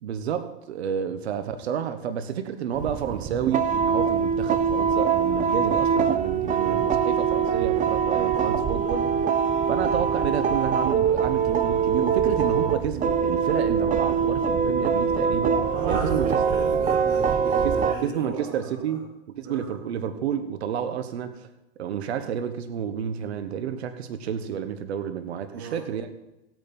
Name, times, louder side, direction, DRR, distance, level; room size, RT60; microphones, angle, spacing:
voice 1, 0.0-9.1 9.7-16.3 17.5-19.0 19.3-21.5 21.8-26.1, right 8 dB, 80° right, 9 dB, 1.2 m, -30 dB
sound 1, 2.7-17.9, right 6 dB, 25° right, 1.0 m, -23 dB
voice 2, 6.5-6.9 8.1-8.4 15.7-18.9 19.4-19.7 25.5-25.8, right 3 dB, 45° right, -6 dB, 5.7 m, -36 dB
16.0 x 9.4 x 4.3 m, 0.96 s
hypercardioid pair, 110°, 32 cm